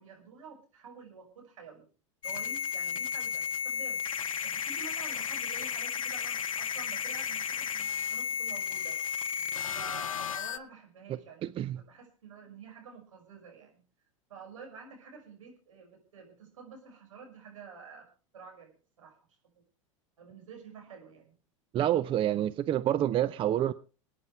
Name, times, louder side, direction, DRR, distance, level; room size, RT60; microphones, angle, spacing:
voice 1, 0.0-1.8 2.2-4.0 4.4-9.0 9.7-13.8 14.3-18.1 18.3-19.2 19.5-19.6 20.2-21.4, right 5 dB, 75° right, 5.9 m, -49 dB
sound 1, 2.2-10.6, left 8 dB, 85° left, 0.7 m, -33 dB
voice 2, 21.7-23.7, right 11 dB, 30° right, 0.6 m, -27 dB
27.5 x 9.4 x 3.3 m
hypercardioid pair, 90°, 17 cm